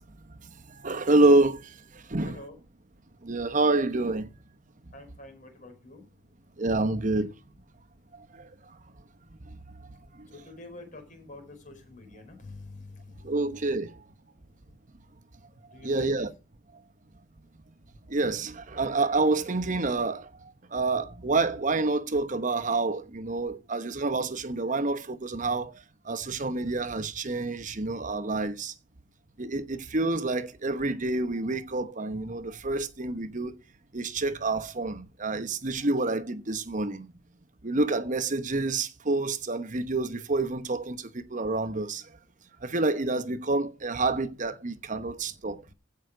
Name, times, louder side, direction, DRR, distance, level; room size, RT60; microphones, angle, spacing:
voice 1, 0.7-1.7 2.1-2.4 3.2-4.3 6.6-7.3 8.3-8.5 10.2-10.3 13.2-14.0 15.8-16.3 18.1-20.3 20.7-25.7 26.1-28.7 29.4-33.5 33.9-37.1 37.6-42.0 42.6-45.6, right 2 dB, 40° right, 0.9 m, -28 dB
voice 2, 2.2-2.6 4.9-6.0 10.3-13.4 15.7-16.3, left 2 dB, 40° left, 4.8 m, -46 dB
16.0 x 5.8 x 4.9 m
head